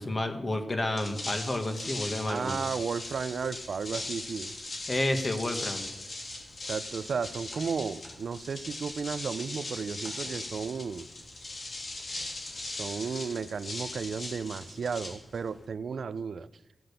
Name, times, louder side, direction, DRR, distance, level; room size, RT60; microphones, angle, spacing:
voice 1, 0.0-2.6 4.9-5.9, left 1 dB, 30° left, 6 dB, 1.6 m, -30 dB
sound 1, 0.8-15.7, left 2 dB, 45° left, 3.1 m, -39 dB
voice 2, 2.3-4.5 6.7-11.1 12.8-16.5, right 5 dB, 65° right, 15 dB, 0.5 m, -34 dB
16.0 x 7.7 x 6.8 m, 0.91 s
wide cardioid pair, 155°, 0 cm